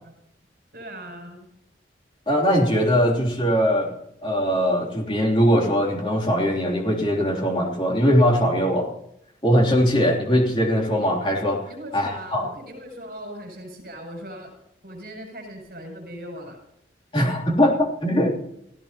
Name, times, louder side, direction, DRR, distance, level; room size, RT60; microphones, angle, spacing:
voice 1, 0.7-1.5 11.7-14.5 14.8-16.6, equal, 50° right, 1 dB, 7.3 m, -39 dB
voice 2, 2.3-3.9 4.2-8.9 9.4-11.6 11.9-12.5 17.1-18.3, equal, 25° left, 0 dB, 3.1 m, -21 dB
29.5 x 15.5 x 2.9 m, 0.77 s
head